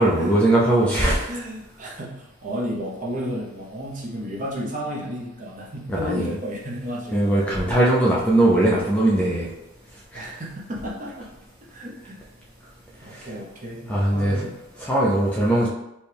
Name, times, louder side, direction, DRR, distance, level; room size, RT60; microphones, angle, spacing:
voice 1, 0.0-1.3 5.9-6.3 7.1-9.5 10.1-10.3 13.1-13.3 13.9-14.5 14.8-15.7, right 1 dB, 5° left, -6 dB, 0.4 m, -20 dB
voice 2, 1.3-7.2 10.1-11.3 11.7-12.2 13.0-14.5, equal, 35° right, -4 dB, 0.8 m, -32 dB
4.2 x 2.3 x 3.3 m, 0.90 s
head